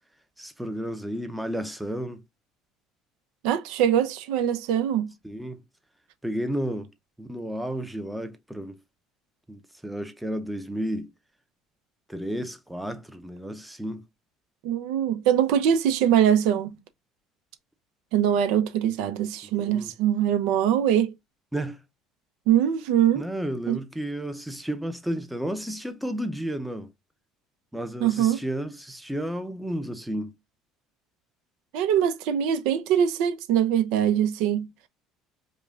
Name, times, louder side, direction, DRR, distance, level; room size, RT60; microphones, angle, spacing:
voice 1, 0.4-2.2 5.2-5.6 6.2-6.9 7.2-8.8 9.5-11.1 12.1-14.0 19.4-19.9 21.5-21.8 23.1-26.9 27.7-30.3, equal, 5° right, 0.6 m, -32 dB
voice 2, 3.4-5.1 14.6-16.8 18.1-21.1 22.5-23.3 23.7-23.8 28.0-28.4 31.7-34.7, right 10 dB, 80° right, 0.7 m, -23 dB
5.3 x 2.3 x 2.4 m
cardioid pair, 135°, 0 cm